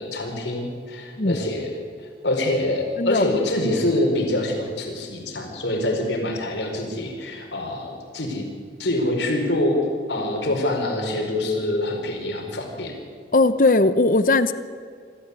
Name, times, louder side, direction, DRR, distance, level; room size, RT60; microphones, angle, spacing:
voice 1, 0.0-1.7 2.2-8.5 8.8-9.8 10.1-12.9, left 1 dB, 90° left, 2 dB, 4.7 m, -25 dB
voice 2, 13.3-14.5, left 2 dB, 50° left, 13 dB, 0.9 m, -18 dB
27.0 x 13.5 x 8.4 m, 2.1 s
head